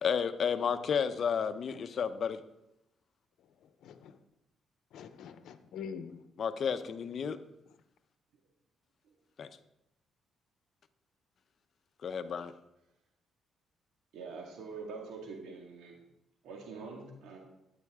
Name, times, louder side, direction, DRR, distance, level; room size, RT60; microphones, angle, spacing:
voice 1, 0.0-2.4 6.4-7.4 9.4-9.5 12.0-12.5, left 7 dB, 55° left, 10 dB, 0.8 m, -32 dB
voice 2, 3.6-4.2 4.9-6.3, left 7 dB, 80° left, 10 dB, 0.9 m, -45 dB
voice 3, 14.1-16.0 16.4-17.4, right 4 dB, 85° right, 1 dB, 1.9 m, -44 dB
12.0 x 9.9 x 3.7 m, 0.87 s
cardioid pair, 90°, 0 cm